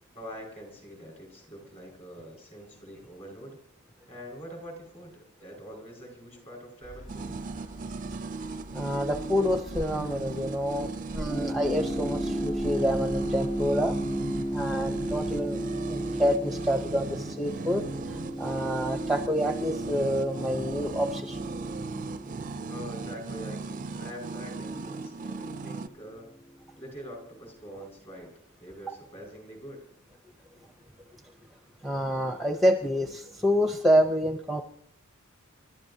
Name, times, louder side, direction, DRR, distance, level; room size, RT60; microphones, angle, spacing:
voice 1, 0.1-3.6 4.1-7.4 22.7-26.3 26.8-28.3 28.6-29.8, equal, 30° left, 1 dB, 5.0 m, -44 dB
sound 1, 6.8-15.4, right 1 dB, 65° left, 5.1 m, -43 dB
sound 2, 7.1-25.9, right 3 dB, 35° right, 0.4 m, -37 dB
voice 2, 8.7-14.0 14.5-15.6 15.9-17.8 18.1-21.4 28.9-29.0 31.8-34.6, equal, ahead, 4 dB, 0.7 m, -27 dB
sound 3, 11.3-26.1, equal, 15° left, 1.8 m, -35 dB
29.5 x 12.5 x 2.8 m, 0.68 s
head